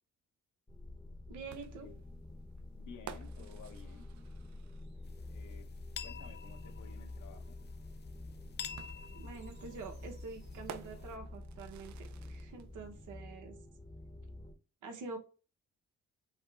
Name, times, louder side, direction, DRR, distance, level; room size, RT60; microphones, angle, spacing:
sound 1, 0.7-14.5, left 1 dB, 15° left, 0.8 m, -48 dB
voice 1, 1.3-1.9 9.1-13.6 14.8-15.2, right 4 dB, 85° right, 1.1 m, -46 dB
sound 2, 1.5-5.2 6.6-6.7 8.8-12.7, right 10 dB, 70° right, 0.4 m, -53 dB
voice 2, 2.8-4.1 5.3-5.7 6.0-7.6, left 6 dB, 80° left, 1.0 m, -54 dB
sound 3, 5.0-11.2, left 8 dB, 35° left, 0.4 m, -49 dB
5.6 x 2.1 x 3.3 m
cardioid pair, 90°, 30 cm